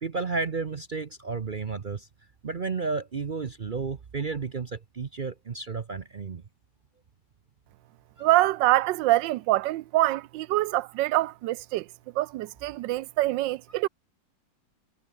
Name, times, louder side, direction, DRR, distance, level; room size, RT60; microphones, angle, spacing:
voice 1, 0.0-2.1 2.4-6.4 8.2-8.3, right 4 dB, 55° right, 0.5 m, -32 dB
voice 2, 8.2-11.8 12.2-13.9, right 16 dB, 75° right, 1.2 m, -25 dB
omnidirectional pair, 2.1 m